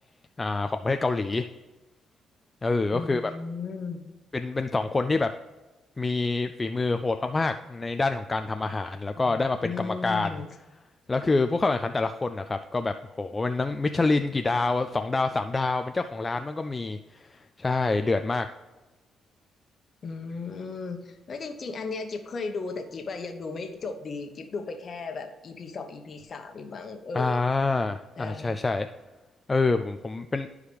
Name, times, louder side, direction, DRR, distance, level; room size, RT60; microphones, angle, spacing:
voice 1, 0.4-1.5 2.6-3.3 4.3-5.3 6.0-10.3 11.1-18.5 27.2-28.9 29.5-30.5, left 3 dB, 25° left, 7 dB, 0.3 m, -26 dB
voice 2, 2.9-4.0 9.2-10.5 20.0-27.4 28.2-28.5, left 4 dB, 45° left, 5 dB, 1.1 m, -36 dB
11.5 x 4.8 x 3.4 m, 1.2 s
cardioid pair, 90°, 0 cm